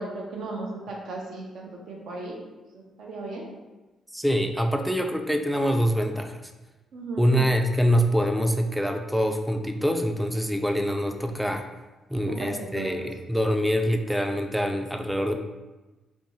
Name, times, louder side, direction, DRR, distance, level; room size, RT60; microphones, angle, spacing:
voice 1, 0.0-2.4 2.7-3.4 6.9-7.3 12.3-12.9, right 2 dB, 75° right, -1 dB, 0.6 m, -36 dB
voice 2, 4.1-6.4 7.2-11.6 12.1-15.4, equal, 5° right, 4 dB, 0.3 m, -25 dB
2.5 x 2.2 x 2.9 m, 1.1 s
cardioid pair, 75°, 0 cm